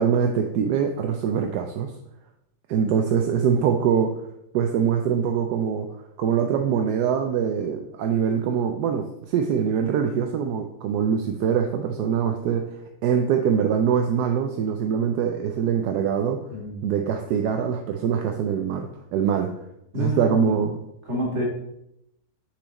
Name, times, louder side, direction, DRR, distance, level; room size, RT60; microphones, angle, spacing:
voice 1, 0.0-1.9 2.7-4.1 4.5-5.9 6.2-12.7 13.0-16.4 16.8-19.5 20.0-20.7, right 7 dB, 80° right, 4 dB, 1.1 m, -23 dB
voice 2, 16.5-16.9 19.9-20.7 21.1-21.4, left 2 dB, 45° right, -2 dB, 2.0 m, -29 dB
6.3 x 4.7 x 3.9 m, 0.81 s
omnidirectional pair, 1.8 m